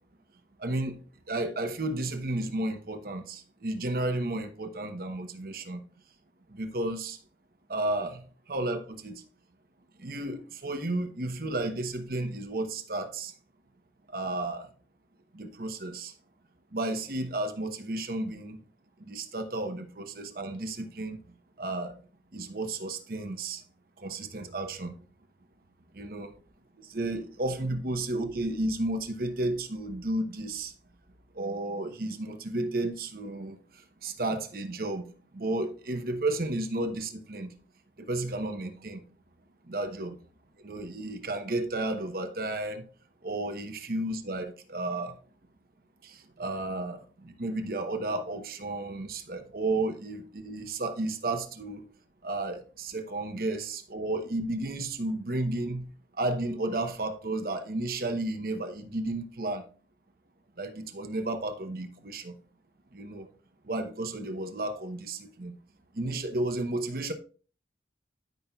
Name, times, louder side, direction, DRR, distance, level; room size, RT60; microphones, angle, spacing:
voice 1, 0.6-1.0 1.3-5.8 6.5-7.2 7.7-8.2 8.5-9.2 10.0-13.3 14.1-14.7 15.3-16.1 16.7-18.6 19.1-21.2 21.6-21.9 22.3-23.6 24.0-24.9 25.9-26.3 26.9-30.7 31.3-33.6 34.0-37.5 38.0-39.0 39.7-40.2 40.6-42.8 43.2-45.2 46.0-51.9 52.2-55.9 56.2-59.7 60.6-62.3 62.9-63.3 63.7-65.6 65.9-67.1, right 2 dB, 55° right, 0.9 m, -32 dB
13.0 x 5.4 x 2.3 m
head